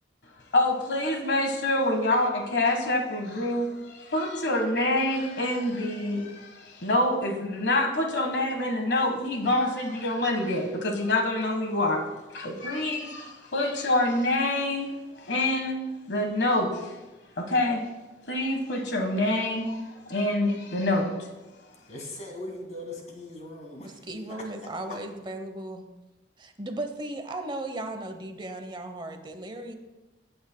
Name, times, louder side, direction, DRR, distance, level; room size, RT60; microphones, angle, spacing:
voice 1, 0.5-12.0 12.3-15.8 16.1-17.0 17.4-17.9 18.3-21.3, left 1 dB, 70° left, 4 dB, 1.5 m, -26 dB
voice 2, 21.9-23.9 24.3-24.7, left 1 dB, 40° left, 0 dB, 2.2 m, -40 dB
voice 3, 23.8-25.8 26.4-29.7, right 1 dB, 25° right, 7 dB, 0.9 m, -36 dB
15.5 x 8.6 x 2.2 m, 1.1 s
head